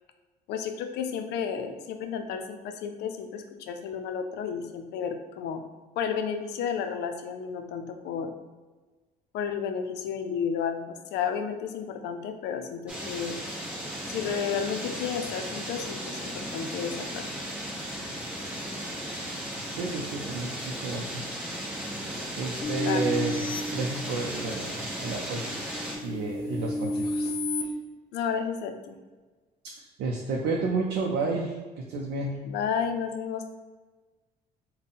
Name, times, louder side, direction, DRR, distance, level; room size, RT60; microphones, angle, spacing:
voice 1, 0.5-5.6 6.0-8.3 9.3-10.8 11.1-13.4 14.1-17.3 22.8-23.0 28.1-28.9 32.4-33.5, left 7 dB, 80° left, 6 dB, 0.4 m, -32 dB
sound 1, 12.9-26.0, equal, 5° right, 0.9 m, -36 dB
voice 2, 19.7-21.3 22.4-23.4 23.7-25.5 26.0-27.3 29.8-32.4, right 3 dB, 75° right, 0 dB, 0.5 m, -31 dB
sound 2, 22.6-24.6 25.1-27.6, left 1 dB, 55° left, 0.8 m, -32 dB
3.6 x 2.1 x 4.0 m, 1.3 s
cardioid pair, 110°, 17 cm